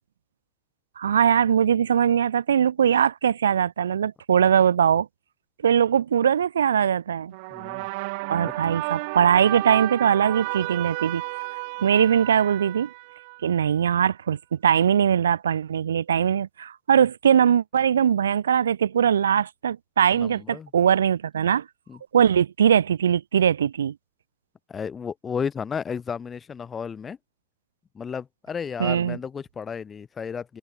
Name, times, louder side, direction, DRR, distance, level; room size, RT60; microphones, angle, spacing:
voice 1, 1.0-5.1 5.6-7.3 8.3-11.2 11.8-12.9 13.4-21.6 22.1-23.9 28.8-29.2, right 8 dB, 65° right, 0.9 m, -21 dB
sound 1, 7.3-13.7, right 29 dB, 45° right, 1.4 m, -32 dB
voice 2, 7.5-7.9 8.4-8.5 20.1-20.7 21.9-22.0 24.7-27.2 27.9-30.6, left 6 dB, 20° left, 5.5 m, -33 dB
figure-of-eight pair, 90°, 0 cm